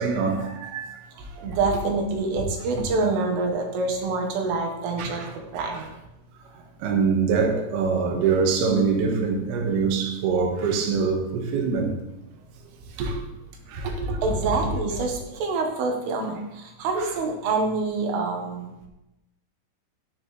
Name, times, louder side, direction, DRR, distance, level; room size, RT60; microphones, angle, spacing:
voice 1, 0.0-1.6 2.7-2.9 5.0-5.4 5.7-5.9 6.5-12.0 13.0-13.3 13.7-15.0 17.0-17.1, right 5 dB, 65° right, 1 dB, 3.1 m, -25 dB
voice 2, 1.4-5.2 5.5-5.9 14.2-16.4 16.8-18.7, right 3 dB, 80° right, 2 dB, 4.0 m, -26 dB
13.5 x 10.0 x 3.4 m, 0.91 s
omnidirectional pair, 5.6 m